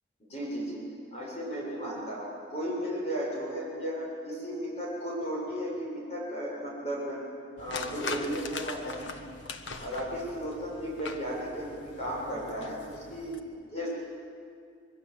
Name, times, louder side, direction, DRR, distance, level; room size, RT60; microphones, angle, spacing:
voice 1, 0.2-0.8 1.1-7.2 7.6-9.2 9.8-13.9, equal, 35° left, -4 dB, 7.2 m, -35 dB
sound 1, 7.6-13.4, left 3 dB, 80° left, 1.5 m, -41 dB
25.5 x 23.5 x 8.0 m, 2.3 s
head